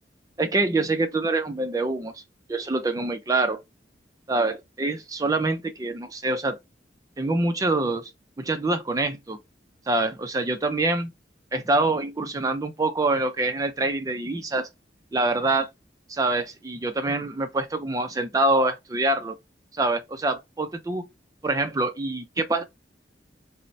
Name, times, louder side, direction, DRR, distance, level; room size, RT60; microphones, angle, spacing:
voice 1, 0.4-2.2 2.5-3.6 4.3-6.6 7.2-8.1 8.4-9.4 9.9-11.1 11.5-14.7 15.1-15.7 16.1-19.3 19.7-21.0 21.4-22.6, right 2 dB, 20° right, 0.3 m, -25 dB
4.2 x 2.0 x 2.6 m
head